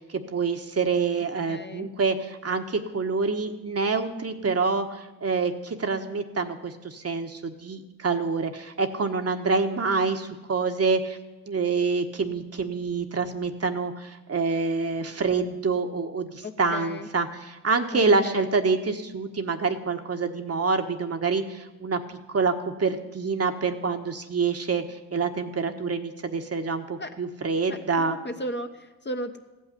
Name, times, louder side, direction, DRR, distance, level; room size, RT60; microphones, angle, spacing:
voice 1, 0.0-11.2 11.5-22.5 22.8-24.8 25.1-28.2, right 4 dB, 35° right, 6 dB, 1.4 m, -26 dB
voice 2, 1.5-1.9 16.4-17.1 17.9-18.5 27.0-27.2 27.7-29.4, left 1 dB, 25° left, 6 dB, 1.2 m, -35 dB
15.0 x 5.7 x 10.0 m, 1.1 s
supercardioid pair, 60°, 39 cm